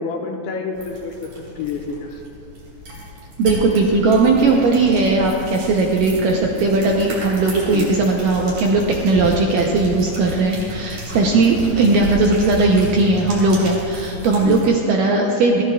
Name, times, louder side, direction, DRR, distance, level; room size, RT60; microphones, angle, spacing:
voice 1, 0.0-2.2 7.7-8.0 14.4-14.7, left 5 dB, 75° left, 2 dB, 2.7 m, -28 dB
sound 1, 0.7-14.7, left 1 dB, 55° right, 4.7 m, -32 dB
voice 2, 3.4-15.6, right 3 dB, 75° right, 0 dB, 2.0 m, -17 dB
19.0 x 15.5 x 2.3 m, 2.7 s
omnidirectional pair, 4.7 m